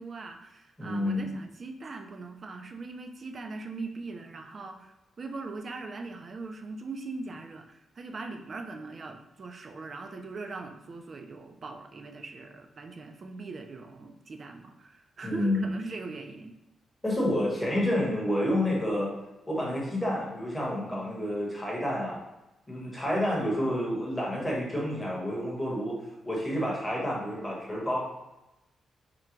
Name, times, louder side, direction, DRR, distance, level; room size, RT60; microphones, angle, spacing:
voice 1, 0.0-16.6, right 3 dB, 35° right, 4 dB, 0.4 m, -40 dB
voice 2, 0.8-1.3 15.2-15.6 17.0-19.1 19.5-22.2 22.7-26.0 26.3-28.0, left 1 dB, 10° left, -4 dB, 1.1 m, -29 dB
3.7 x 2.2 x 4.5 m, 0.97 s
wide cardioid pair, 160°, 0 cm